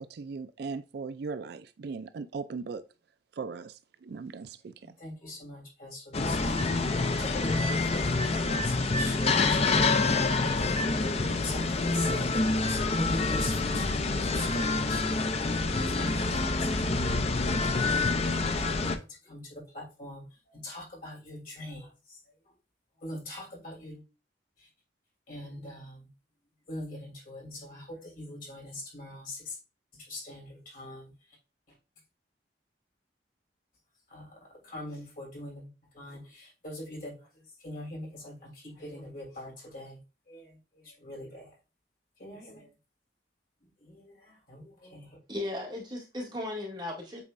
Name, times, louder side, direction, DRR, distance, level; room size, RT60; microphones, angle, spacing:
voice 1, 0.0-2.8 3.4-4.7, right 4 dB, 60° right, 0.4 m, -38 dB
voice 2, 4.8-15.3 15.7-17.3 17.6-22.5 23.0-24.0 24.6-24.7 25.3-26.1 26.7-29.6 29.9-31.4 31.7-31.8 34.1-40.0 40.3-41.5 42.2-42.7 43.6-45.2, left 1 dB, 50° left, 3.1 m, -43 dB
sound 1, 6.1-19.0, left 3 dB, 35° left, 0.5 m, -27 dB
voice 3, 45.3-47.2, left 1 dB, 25° right, 2.2 m, -36 dB
8.3 x 4.4 x 2.5 m
head